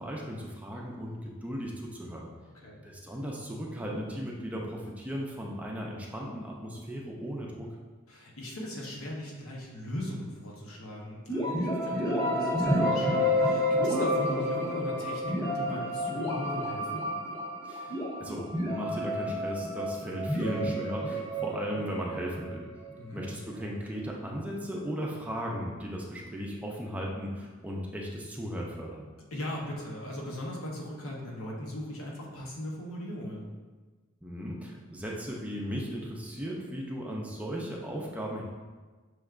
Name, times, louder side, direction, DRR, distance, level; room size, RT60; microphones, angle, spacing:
voice 1, 0.0-2.3 2.8-7.7 17.6-22.7 23.1-29.0 34.2-38.4, equal, 5° right, -2 dB, 0.5 m, -36 dB
voice 2, 8.1-17.1 20.4-20.7 23.0-23.2 29.3-33.5, left 1 dB, 90° left, -2 dB, 0.9 m, -39 dB
sound 1, 11.3-23.0, left 1 dB, 15° left, 1.5 m, -30 dB
6.1 x 3.3 x 2.4 m, 1.3 s
head